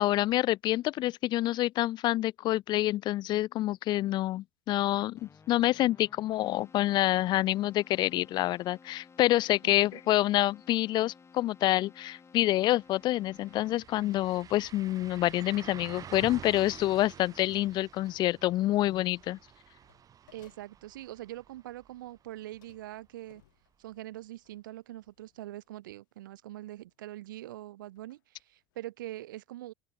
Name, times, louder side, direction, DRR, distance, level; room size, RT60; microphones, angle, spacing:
voice 1, 0.0-19.4, left 15 dB, 45° left, 0.4 m, -27 dB
Keyboard (musical), 5.1-14.1, left 5 dB, 25° left, 4.3 m, -57 dB
voice 2, 9.6-10.0 20.3-23.4 23.8-29.7, right 15 dB, 75° right, 1.1 m, -43 dB
sound 1, 12.5-12.6 12.9-22.7 23.0-23.1 25.9-26.0, right 9 dB, 35° right, 1.2 m, -49 dB
sound 2, 17.6-19.1 19.7-21.7 22.1-25.7 26.3-26.5 26.8-27.3 27.9-28.9, left 16 dB, 70° left, 7.8 m, -68 dB
open air
hypercardioid pair, 80°, 11 cm